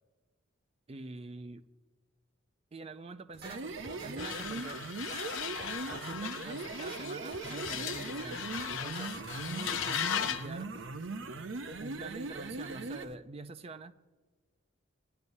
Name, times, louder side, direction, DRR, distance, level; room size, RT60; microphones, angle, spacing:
voice 1, 0.9-1.7 2.7-3.8 4.0-4.8 5.9-10.7 11.8-13.9, right 3 dB, 30° right, 11 dB, 0.4 m, -45 dB
sound 1, 3.3-13.1, right 3 dB, 70° right, 0.7 m, -40 dB
sound 2, 3.4-4.7 5.0-6.4 6.7-7.0 7.3-8.1 8.4-8.7 9.0-10.2, right 2 dB, 50° right, 1.6 m, -48 dB
sound 3, 4.2-10.5, left 9 dB, 75° left, 0.6 m, -37 dB
19.5 x 11.0 x 2.7 m, 1.4 s
head